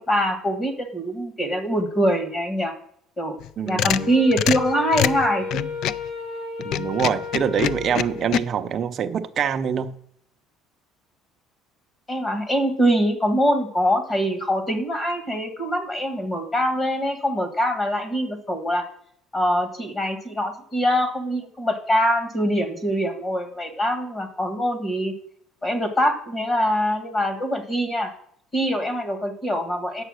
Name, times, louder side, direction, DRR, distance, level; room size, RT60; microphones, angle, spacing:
voice 1, 0.1-2.7 3.2-3.4 3.6-5.6 12.1-18.8 19.3-25.1 25.6-28.1 28.5-30.0, equal, 20° left, 1.4 m, -23 dB
sound 1, 3.4-6.1 6.6-8.4, left 11 dB, 55° left, 0.3 m, -25 dB
voice 2, 3.6-4.1 6.6-9.9, right 8 dB, 35° right, 0.5 m, -25 dB
Wind instrument woodwind instrument, 4.0-8.6, left 4 dB, 80° left, 4.6 m, -33 dB
9.0 x 6.8 x 6.3 m
cardioid pair, 160°, 0 cm